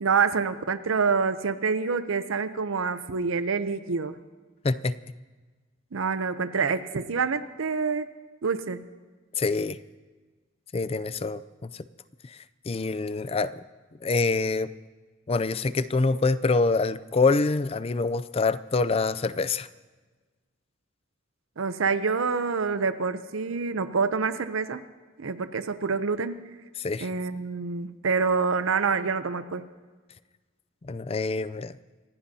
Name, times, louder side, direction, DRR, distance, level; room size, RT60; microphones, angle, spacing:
voice 1, 0.0-4.2 5.9-8.1 8.4-8.8 21.6-24.8 25.2-26.4 27.0-29.6, right 5 dB, 90° right, 11 dB, 0.6 m, -27 dB
voice 2, 4.6-5.0 9.4-9.8 10.7-11.8 12.3-12.4 12.7-13.6 14.0-14.7 15.3-19.7 26.8-27.1 30.8-31.7, left 3 dB, 30° left, 16 dB, 0.4 m, -26 dB
27.0 x 15.5 x 2.8 m, 1.4 s
head